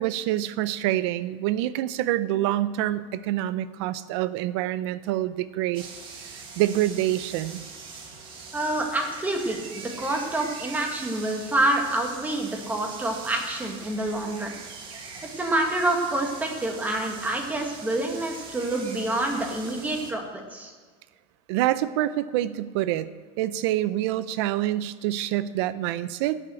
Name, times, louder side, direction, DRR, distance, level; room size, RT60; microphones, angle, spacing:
voice 1, 0.0-5.9 6.2-7.6 21.5-23.1 23.4-26.4, right 14 dB, 65° right, 15 dB, 0.7 m, -26 dB
sound 1, 5.7-20.1, right 4 dB, 35° right, 1.7 m, -42 dB
voice 2, 8.5-14.5 15.4-20.7, right 1 dB, 10° right, 2 dB, 1.7 m, -27 dB
12.0 x 7.4 x 7.7 m, 1.5 s
cardioid pair, 160°, 15 cm